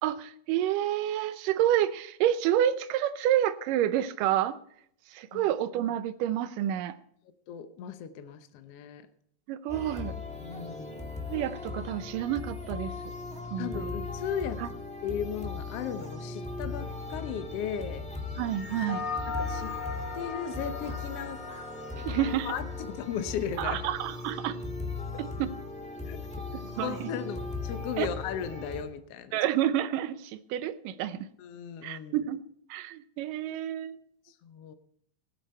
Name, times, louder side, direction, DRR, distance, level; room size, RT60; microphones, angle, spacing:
voice 1, 0.0-4.6 5.1-7.0 9.5-10.1 11.3-12.9 13.5-14.0 14.6-14.7 18.4-19.1 22.0-22.5 23.6-24.6 25.2-25.5 26.8-27.1 28.0-28.1 29.3-31.3 31.8-32.4 32.7-34.0, right 11 dB, 80° right, 13 dB, 2.3 m, -29 dB
voice 2, 7.5-9.0 10.4-11.0 13.6-14.6 15.0-18.0 19.4-19.7 20.1-21.4 21.9-22.1 22.4-23.9 26.0-26.2 26.8-29.3 31.4-32.2 34.4-34.7, left 8 dB, 75° left, 10 dB, 1.4 m, -36 dB
sound 1, 9.7-28.8, left 3 dB, 5° left, 0.8 m, -38 dB
sound 2, 18.5-23.2, left 4 dB, 50° left, 2.4 m, -38 dB
18.0 x 8.9 x 4.3 m, 0.68 s
omnidirectional pair, 3.9 m